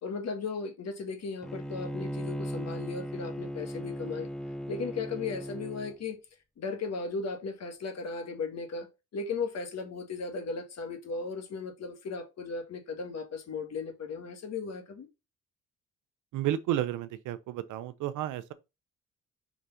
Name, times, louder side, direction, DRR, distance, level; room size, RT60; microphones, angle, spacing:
voice 1, 0.0-4.3 4.7-6.2 6.6-8.9 9.1-15.1, left 4 dB, 60° left, 1.7 m, -36 dB
Bowed string instrument, 1.4-6.0, equal, ahead, 0.6 m, -37 dB
voice 2, 16.3-18.5, right 12 dB, 85° right, 0.7 m, -32 dB
5.0 x 3.4 x 5.6 m
cardioid pair, 90°, 30 cm